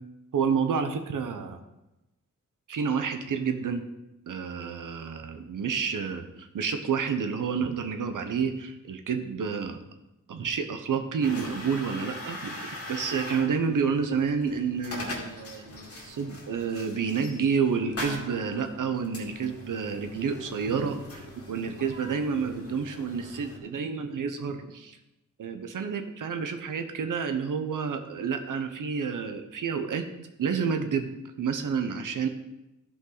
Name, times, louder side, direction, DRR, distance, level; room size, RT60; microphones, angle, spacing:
voice 1, 0.3-1.6 2.7-3.8 4.3-9.8 10.3-25.0 25.4-30.1 30.4-32.3, right 6 dB, 85° right, 7 dB, 0.9 m, -29 dB
sound 1, 11.2-23.6, left 1 dB, 50° left, 2.2 m, -41 dB
13.0 x 5.4 x 4.0 m, 0.96 s
cardioid pair, 65°, 31 cm